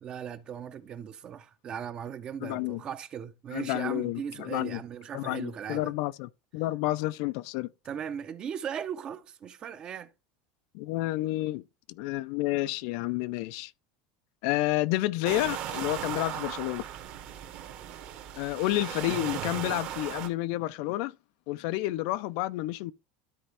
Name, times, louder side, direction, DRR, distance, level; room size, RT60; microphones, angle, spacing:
voice 1, 0.0-5.9 7.8-10.1, right 8 dB, 30° right, 0.6 m, -38 dB
voice 2, 2.4-2.8 3.5-4.8 5.1-7.7 10.7-11.6 12.0-13.7 14.4-16.8 18.3-21.1 21.5-22.9, left 17 dB, 60° left, 0.4 m, -30 dB
sound 1, 15.3-20.3, right 10 dB, 50° right, 1.3 m, -37 dB
12.5 x 4.4 x 3.4 m
cardioid pair, 160°, 3 cm